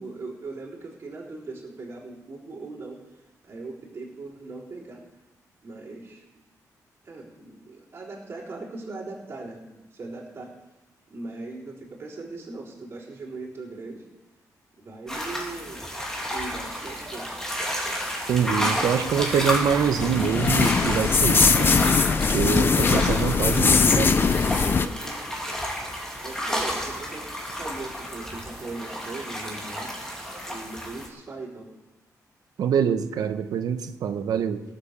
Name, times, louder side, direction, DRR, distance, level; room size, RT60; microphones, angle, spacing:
voice 1, 0.0-5.0 5.6-6.4 7.0-10.5 11.1-14.1 14.8-15.8 16.3-17.3 24.7-25.3 26.2-29.9 30.5-31.7, right 3 dB, 40° right, -4 dB, 4.1 m, -39 dB
sound 1, 15.1-31.1, equal, 10° left, 2.7 m, -31 dB
Engine / Mechanisms, 16.4-30.7, right 2 dB, 25° right, 2.6 m, -47 dB
voice 2, 18.3-21.8 22.3-24.1 32.6-34.6, right 8 dB, 80° right, 9 dB, 1.0 m, -25 dB
sound 2, 19.1-24.9, left 5 dB, 35° left, 0.7 m, -21 dB
17.5 x 8.0 x 6.8 m, 1.0 s
wide cardioid pair, 140°, 6 cm